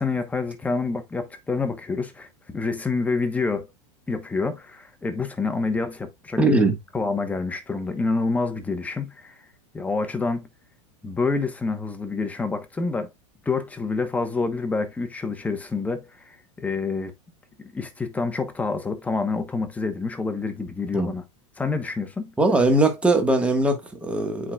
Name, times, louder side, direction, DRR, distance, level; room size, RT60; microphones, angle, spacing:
voice 1, 0.0-2.3 2.5-3.7 4.1-6.4 6.9-9.3 9.7-10.5 11.0-13.1 13.4-17.1 17.6-21.2 21.6-22.3, left 4 dB, 10° left, 1.0 m, -27 dB
voice 2, 6.4-6.8 20.9-21.1 22.4-24.5, right 2 dB, 5° right, 1.4 m, -20 dB
8.5 x 4.9 x 2.3 m
supercardioid pair, 145°, 16 cm